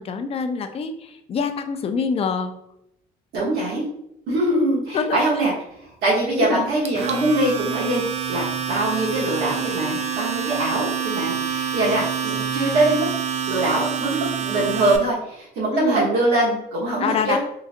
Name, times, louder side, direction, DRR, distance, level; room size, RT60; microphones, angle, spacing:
voice 1, 0.0-2.6 4.9-5.4 6.4-6.6 15.7-16.1 17.0-17.4, left 5 dB, 35° left, 8 dB, 0.4 m, -25 dB
voice 2, 3.3-3.8 4.3-5.5 6.0-13.1 13.5-17.4, right 1 dB, 75° right, -6 dB, 1.0 m, -23 dB
Domestic sounds home sounds, 6.8-15.0, right 7 dB, 40° right, 0.4 m, -27 dB
3.8 x 2.5 x 2.5 m, 0.78 s
cardioid pair, 110°, 17 cm